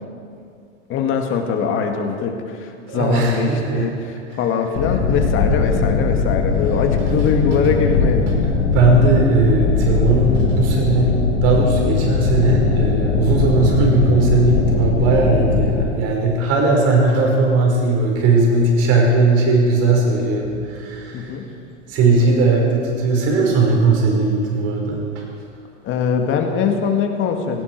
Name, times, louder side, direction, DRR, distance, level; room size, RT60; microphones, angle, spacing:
voice 1, 0.9-8.3 21.1-21.5 25.8-27.6, left 6 dB, 35° left, 4 dB, 2.1 m, -22 dB
voice 2, 2.9-3.9 8.4-11.2 11.4-21.3 21.9-25.0, right 3 dB, 40° right, 0 dB, 5.0 m, -18 dB
sound 1, 4.7-15.8, left 5 dB, 60° left, 2.8 m, -19 dB
17.5 x 17.0 x 4.7 m, 2.3 s
hypercardioid pair, 125°, 36 cm